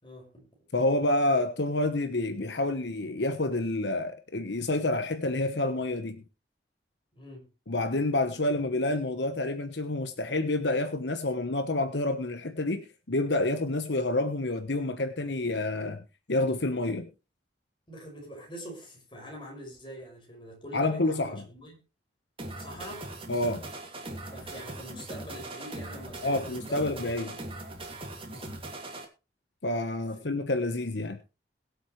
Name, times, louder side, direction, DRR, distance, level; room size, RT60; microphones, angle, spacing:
voice 1, 0.0-0.5 7.1-7.5 17.9-21.8 22.6-23.1 24.3-27.3 28.3-28.6, equal, 30° left, 5.8 m, -44 dB
voice 2, 0.7-6.2 7.7-16.0 16.3-17.1 20.7-21.4 23.3-23.6 26.2-27.3 29.6-31.2, left 2 dB, 75° left, 1.2 m, -28 dB
sound 1, 22.4-29.0, right 2 dB, 30° right, 2.6 m, -40 dB
22.0 x 8.0 x 3.2 m
head